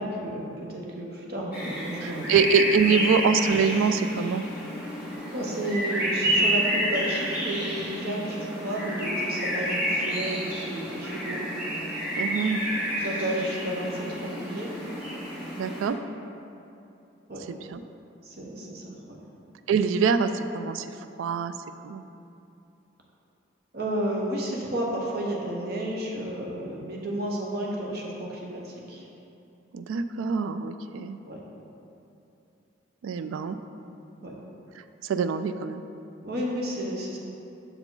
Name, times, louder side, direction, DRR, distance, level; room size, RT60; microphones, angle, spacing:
voice 1, 0.0-2.3 5.3-11.5 13.0-14.7 17.3-17.5 18.2-19.2 23.7-29.1 31.2-31.4 33.4-34.4 36.2-37.2, right 1 dB, 50° right, -2 dB, 0.9 m, -32 dB
sound 1, 1.5-15.9, equal, 10° right, 1.5 m, -30 dB
voice 2, 2.0-4.4 12.2-12.6 15.6-16.0 17.5-17.8 19.7-20.9 21.2-21.5 21.8-22.0 29.7-31.2 33.0-33.6 35.0-35.8, right 5 dB, 80° right, 10 dB, 0.3 m, -25 dB
6.6 x 4.8 x 3.8 m, 2.8 s
head